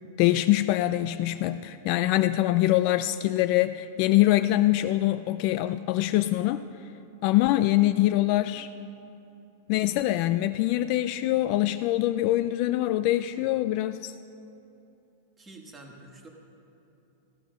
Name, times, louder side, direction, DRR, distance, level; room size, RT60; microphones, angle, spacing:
voice 1, 0.2-6.6 7.2-8.7 9.7-14.1, left 15 dB, 35° left, 11 dB, 0.3 m, -24 dB
voice 2, 15.4-16.3, right 2 dB, 10° right, 1 dB, 1.5 m, -47 dB
16.0 x 11.0 x 6.2 m, 3.0 s
supercardioid pair, 170°, 0 cm